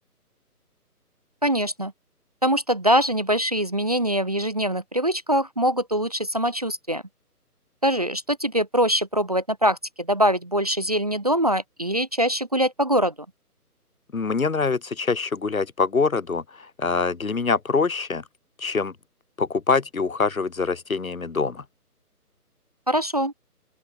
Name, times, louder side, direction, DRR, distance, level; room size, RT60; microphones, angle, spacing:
voice 1, 1.4-1.9 2.4-7.0 7.8-13.1 22.9-23.3, equal, 25° right, 0.8 m, -23 dB
voice 2, 14.1-18.2 18.6-18.9 19.4-21.6, left 4 dB, 60° left, 1.5 m, -24 dB
open air
figure-of-eight pair, 150°, 46 cm